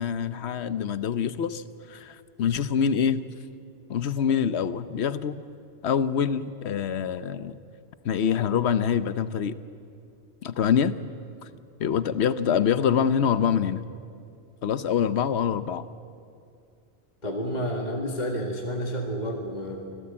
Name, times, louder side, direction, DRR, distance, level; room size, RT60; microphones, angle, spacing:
voice 1, 0.0-1.6 1.9-3.2 3.9-5.4 5.8-7.6 8.0-9.6 10.4-11.0 11.8-13.8 14.6-15.9, left 7 dB, 70° left, 14 dB, 1.1 m, -25 dB
voice 2, 17.2-19.8, equal, 40° left, 1 dB, 2.0 m, -30 dB
26.0 x 17.0 x 8.7 m, 2.4 s
omnidirectional pair, 1.2 m